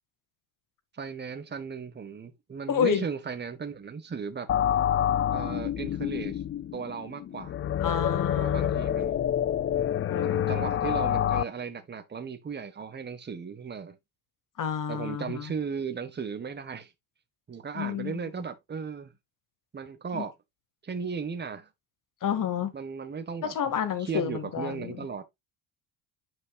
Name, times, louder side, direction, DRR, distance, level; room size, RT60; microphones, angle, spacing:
voice 1, 0.9-4.5 5.3-6.4 6.7-7.5 8.3-9.2 10.2-14.0 14.9-16.9 17.5-19.1 19.7-20.3 20.8-21.7 22.7-23.5 24.0-25.2, right 6 dB, 25° right, 1.4 m, -36 dB
voice 2, 2.7-3.0 7.8-8.8 10.1-10.7 14.6-15.5 17.7-18.4 20.1-20.3 22.2-22.7 23.4-25.1, left 8 dB, 50° left, 2.0 m, -30 dB
sound 1, 4.5-11.4, left 10 dB, 30° left, 0.5 m, -27 dB
9.4 x 5.4 x 2.4 m
supercardioid pair, 95°, 42 cm